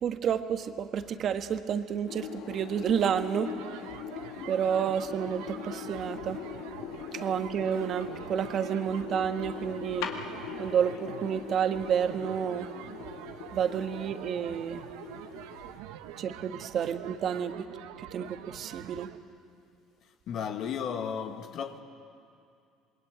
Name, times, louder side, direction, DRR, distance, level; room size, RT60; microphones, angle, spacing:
voice 1, 0.0-3.5 4.4-6.4 7.1-10.1 10.6-12.7 13.5-14.8 16.2-17.7 18.0-19.1, right 8 dB, 50° right, 8 dB, 1.5 m, -30 dB
sound 1, 2.1-15.8, left 8 dB, 80° left, 2.1 m, -41 dB
sound 2, 3.4-19.2, right 12 dB, 80° right, 1.1 m, -45 dB
voice 2, 20.3-21.8, left 7 dB, 60° left, 5 dB, 2.0 m, -34 dB
27.0 x 21.5 x 8.9 m, 2.4 s
supercardioid pair, 80°, 0 cm